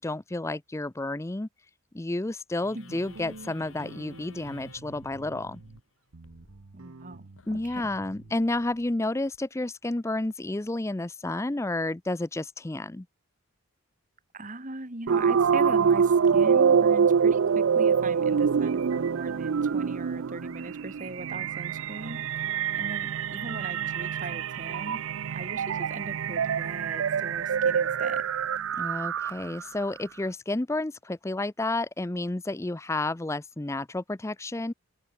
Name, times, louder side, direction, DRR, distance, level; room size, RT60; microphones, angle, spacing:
voice 1, 0.0-1.5 1.9-5.6 7.5-13.1 28.8-34.7, left 2 dB, 15° left, 0.5 m, -31 dB
sound 1, 2.6-9.4, left 3 dB, 65° left, 1.7 m, -55 dB
voice 2, 2.7-3.0 6.7-7.9 14.3-28.3, right 2 dB, 35° right, 2.4 m, -40 dB
sound 2, 2.9-5.8 6.1-8.3, right 3 dB, 80° right, 0.9 m, -48 dB
sound 3, 15.1-29.6, right 6 dB, 65° right, 0.4 m, -25 dB
head